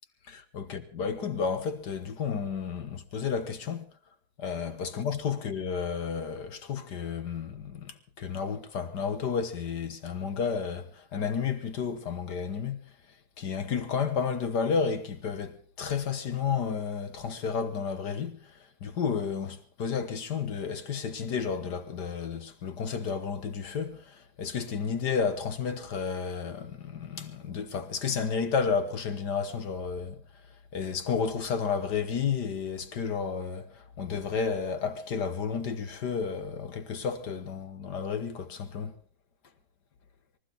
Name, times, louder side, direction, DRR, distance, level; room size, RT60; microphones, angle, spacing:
voice 1, 0.3-3.9 4.4-12.8 13.4-30.2 30.7-39.0, left 6 dB, 55° left, 1.8 m, -32 dB
24.5 x 14.5 x 4.0 m
omnidirectional pair, 2.3 m